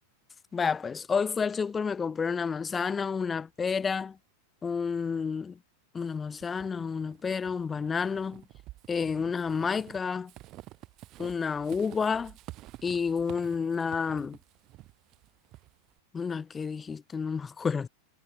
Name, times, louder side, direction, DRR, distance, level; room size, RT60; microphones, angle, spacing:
voice 1, 0.5-4.2 4.6-5.6 5.9-8.4 8.9-10.3 11.2-12.3 12.8-14.4 16.1-17.9, left 5 dB, 15° left, 0.6 m, -30 dB
Walk footsteps / Squeak, 6.4-16.0, right 17 dB, 35° right, 2.1 m, -50 dB
figure-of-eight pair, 90°, 0 cm